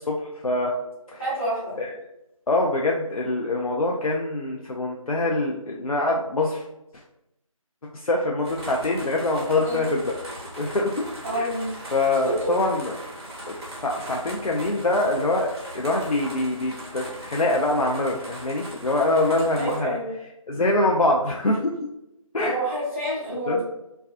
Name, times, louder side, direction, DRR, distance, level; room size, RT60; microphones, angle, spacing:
voice 1, 0.1-0.7 1.1-1.2 1.8-1.9 2.5-6.6 7.9-10.1 10.6-11.0 11.3-11.5 11.9-12.9 13.5-13.6 13.8-20.0 20.5-21.7 22.3-22.6 23.5-23.6, left 2 dB, 85° left, -1 dB, 0.4 m, -24 dB
voice 2, 1.2-1.8 9.6-9.9 11.2-11.8 12.2-12.5 19.5-20.1 22.4-23.6, equal, 20° right, -9 dB, 0.7 m, -28 dB
sound 1, 8.4-19.8, right 1 dB, 50° right, 0.8 m, -39 dB
2.4 x 2.2 x 2.4 m, 0.89 s
figure-of-eight pair, 170°, 18 cm